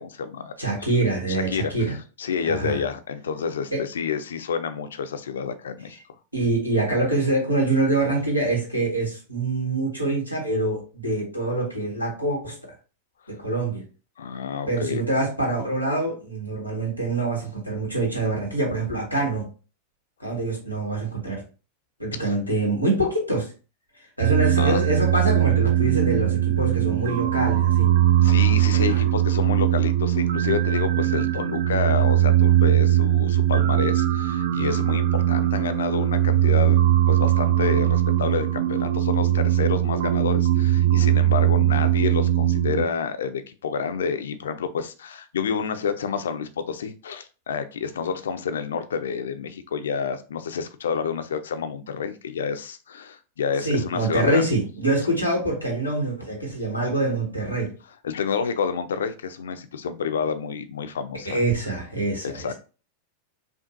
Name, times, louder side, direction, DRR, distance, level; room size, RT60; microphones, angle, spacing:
voice 1, 0.0-0.5 1.3-1.7 2.2-6.0 14.2-15.0 22.2-22.3 24.6-24.8 28.2-54.5 58.0-61.4 62.2-62.5, left 6 dB, 65° left, 0.4 m, -29 dB
voice 2, 0.6-1.9 2.4-2.8 3.7-3.9 6.3-12.7 13.3-13.8 14.7-19.5 20.2-21.4 22.0-23.5 24.2-27.9 28.9-29.0 53.6-57.7 61.2-62.5, right 2 dB, 90° right, 1.5 m, -25 dB
sound 1, 24.2-42.9, right 12 dB, 55° right, 0.4 m, -20 dB
5.2 x 2.4 x 2.6 m
figure-of-eight pair, 90°, 0 cm